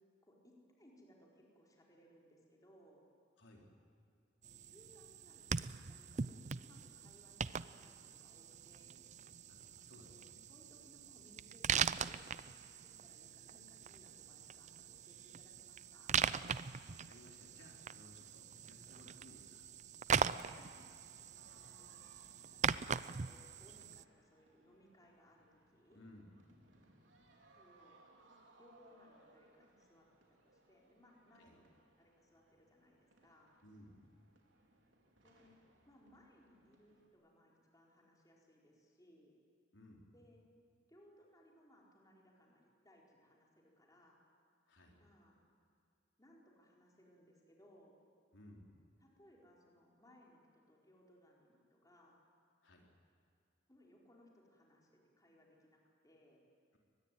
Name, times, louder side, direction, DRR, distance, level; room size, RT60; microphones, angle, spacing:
voice 1, 0.2-3.1 4.7-9.0 9.9-12.4 12.8-16.3 20.5-20.9 21.5-22.2 22.5-26.0 27.5-28.0 28.6-31.7 32.0-33.5 35.2-35.5 35.9-39.3 40.1-40.4 40.9-44.2 45.0-45.4 46.2-48.0 49.0-52.2 53.7-54.9 55.2-56.4, equal, 20° left, -2 dB, 4.5 m, -66 dB
sound 1, 4.4-24.0, right 7 dB, 40° right, 0.5 m, -41 dB
voice 2, 9.5-10.4 16.8-19.6 25.9-26.3 31.3-31.6 33.6-34.0 39.7-40.0 44.7-45.0 48.3-48.7 52.6-52.8, left 1 dB, 90° left, 0 dB, 4.2 m, -60 dB
sound 2, 21.3-37.1, right 2 dB, 80° right, 4.1 m, -68 dB
23.5 x 20.5 x 9.2 m, 2.4 s
head